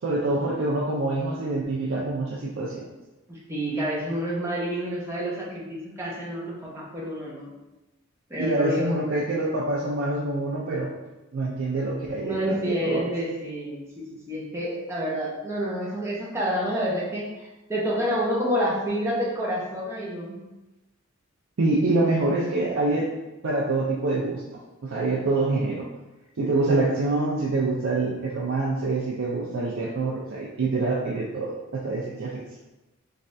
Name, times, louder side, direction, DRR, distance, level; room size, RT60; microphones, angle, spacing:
voice 1, 0.0-2.9 8.4-10.9 11.3-13.0 21.6-23.1 23.4-24.4 24.8-25.9 26.4-32.4, right 2 dB, 65° right, -4 dB, 0.5 m, -26 dB
voice 2, 3.3-7.5 8.3-9.0 12.2-17.3 17.7-20.4 22.0-22.1, equal, 15° right, -5 dB, 0.7 m, -28 dB
3.3 x 3.2 x 2.6 m, 1.0 s
head